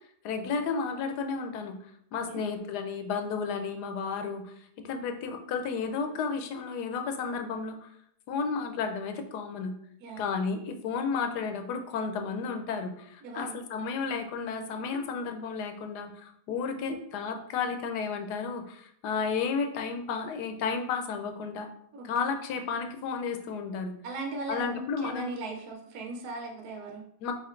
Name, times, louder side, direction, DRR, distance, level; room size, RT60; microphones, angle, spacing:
voice 1, 0.2-1.8 2.1-4.5 4.8-7.9 8.3-9.7 10.2-21.7 22.0-23.9 24.5-25.3 27.2-27.3, left 5 dB, 80° left, 6 dB, 1.2 m, -32 dB
voice 2, 10.0-10.3 13.2-13.6 21.9-22.2 24.0-27.0, right 3 dB, 70° right, 1 dB, 1.2 m, -38 dB
4.3 x 4.3 x 2.4 m, 0.70 s
omnidirectional pair, 1.8 m